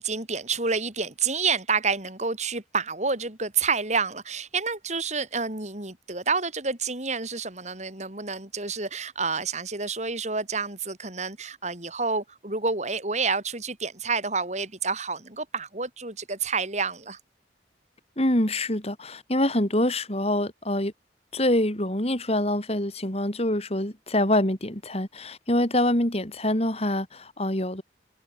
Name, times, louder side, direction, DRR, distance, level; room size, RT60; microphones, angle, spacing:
voice 1, 0.0-17.2, right 4 dB, 40° right, 4.6 m, -29 dB
voice 2, 18.2-20.9 21.3-27.8, left 1 dB, 35° left, 4.3 m, -25 dB
open air
head